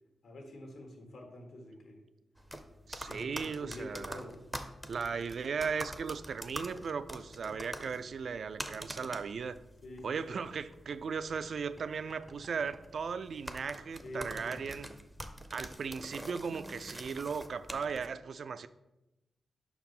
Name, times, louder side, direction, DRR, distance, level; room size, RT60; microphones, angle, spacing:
voice 1, 0.2-2.0 3.1-4.4 9.8-10.1 14.0-14.6, left 1 dB, 80° left, 3 dB, 1.4 m, -46 dB
sound 1, 2.4-18.1, equal, 5° right, 0.5 m, -46 dB
voice 2, 2.9-4.2 4.9-9.6 10.0-14.9 15.5-18.7, right 5 dB, 60° right, 14 dB, 0.3 m, -37 dB
5.5 x 4.7 x 5.4 m, 0.96 s
wide cardioid pair, 125°, 0 cm